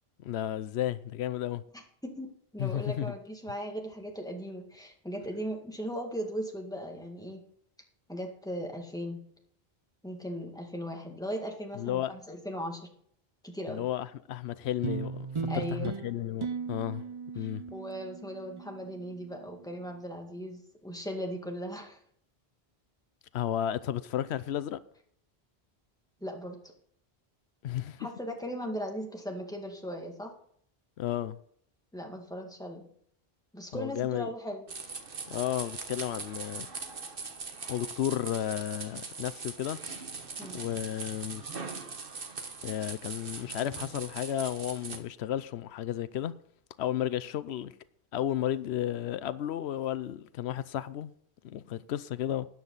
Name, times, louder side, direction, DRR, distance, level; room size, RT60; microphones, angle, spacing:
voice 1, 0.2-1.6 2.6-3.1 11.8-12.1 13.7-17.0 17.3-17.6 23.3-24.8 27.6-28.1 31.0-31.4 33.7-34.3 35.3-36.7 37.7-40.0 40.5-41.4 42.6-46.3 46.8-47.7 48.1-51.1 51.4-52.5, left 11 dB, 90° left, 0.9 m, -33 dB
voice 2, 2.0-7.4 8.1-9.2 10.0-12.8 13.4-13.9 15.5-15.9 17.4-22.0 26.2-26.6 28.0-30.3 31.9-32.9 33.5-34.6 40.4-40.6, equal, 5° left, 2.0 m, -38 dB
sound 1, 14.8-19.5, right 5 dB, 35° right, 0.6 m, -37 dB
sound 2, 34.7-45.0, right 4 dB, 60° right, 1.4 m, -41 dB
13.0 x 9.3 x 4.0 m
omnidirectional pair, 1.1 m